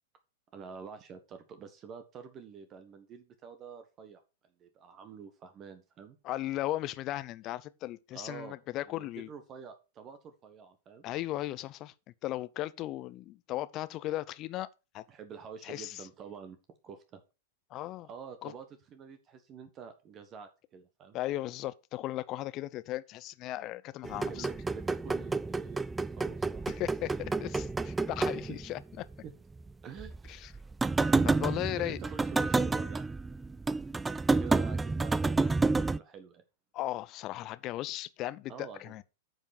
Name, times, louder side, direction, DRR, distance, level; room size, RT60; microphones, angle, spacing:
voice 1, 0.5-4.2 4.6-6.2 8.1-8.6 8.8-11.0 15.1-16.6 16.8-17.2 18.1-21.2 24.3-25.8 26.1-26.9 28.5-28.6 29.2-29.3 29.8-30.4 31.5-33.1 34.3-36.4 38.5-39.0, right 6 dB, 30° right, 1.4 m, -48 dB
voice 2, 6.2-9.3 11.0-11.9 12.2-14.7 14.9-15.0 15.6-16.0 17.7-18.1 18.4-18.5 21.1-24.5 26.7-29.1 30.3-30.5 31.2-32.0 35.4-35.5 36.7-39.0, left 15 dB, 40° left, 0.6 m, -36 dB
sound 1, 24.0-29.2 29.6-29.7 30.0-36.0, right 3 dB, 10° right, 0.3 m, -30 dB
9.4 x 5.5 x 5.2 m
hypercardioid pair, 105°, 0 cm